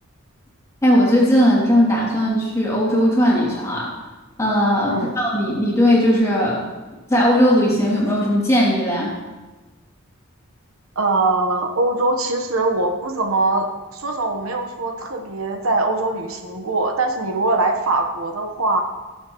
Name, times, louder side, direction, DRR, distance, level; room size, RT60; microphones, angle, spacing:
voice 1, 0.8-3.9 4.4-6.6 7.1-9.2, equal, 15° left, -5 dB, 2.6 m, -18 dB
voice 2, 10.9-18.8, right 2 dB, 85° right, 4 dB, 1.2 m, -22 dB
18.0 x 7.1 x 3.1 m, 1.2 s
head